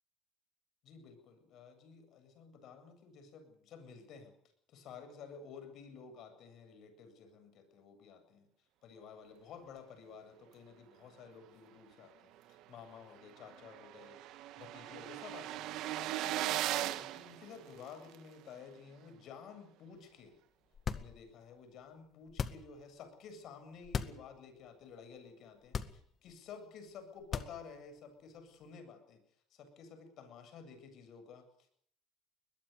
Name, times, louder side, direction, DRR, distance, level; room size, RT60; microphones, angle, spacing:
voice 1, 0.8-4.3 4.7-8.5 8.8-20.4 20.9-25.8 26.2-29.2 29.5-31.7, left 6 dB, 65° left, 9 dB, 7.7 m, -53 dB
sound 1, 12.6-12.7 13.0-13.1 13.3-18.1, right 14 dB, 70° right, 1.6 m, -38 dB
sound 2, 20.7-21.4 22.3-22.8 23.8-24.3 24.7-24.8 25.6-26.3 27.2-27.9, left 6 dB, 40° left, 1.9 m, -38 dB
22.0 x 21.0 x 6.9 m, 0.62 s
supercardioid pair, 90°, 0 cm